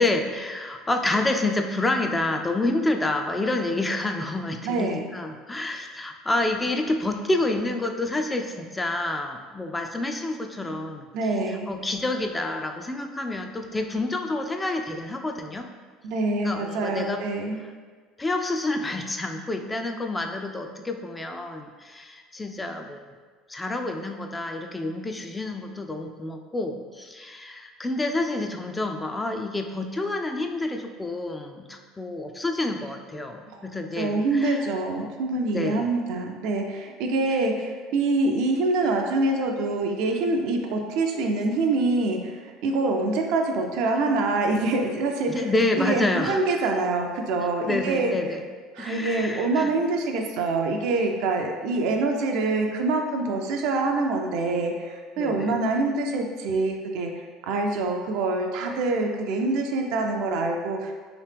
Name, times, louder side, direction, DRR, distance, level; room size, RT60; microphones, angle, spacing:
voice 1, 0.0-15.7 16.4-17.2 18.2-23.0 23.5-34.7 35.5-35.9 45.3-46.4 47.6-48.4 48.8-49.8 55.2-55.6, left 2 dB, 15° left, 4 dB, 0.3 m, -28 dB
voice 2, 4.6-5.0 11.1-11.7 16.0-17.6 34.0-42.3 42.6-45.3 45.8-48.1 48.8-57.1 57.4-60.9, right 3 dB, 70° right, 2 dB, 0.4 m, -25 dB
3.0 x 2.8 x 3.3 m, 1.5 s
supercardioid pair, 95°, 0 cm